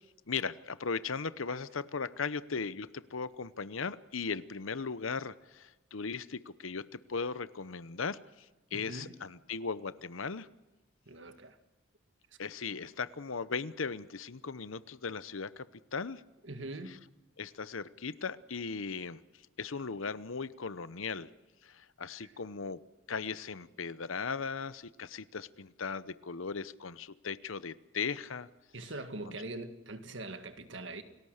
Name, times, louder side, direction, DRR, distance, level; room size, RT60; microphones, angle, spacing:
voice 1, 0.3-8.2 8.7-10.5 12.4-15.7 15.9-16.2 17.4-19.2 19.6-21.3 21.6-22.8 23.1-28.5 29.2-29.3, left 5 dB, 80° left, 0.9 m, -37 dB
voice 2, 8.7-9.2 11.1-11.6 16.4-17.0 22.2-22.3 28.7-31.0, right 2 dB, 65° right, 1.8 m, -42 dB
29.0 x 19.0 x 6.6 m
head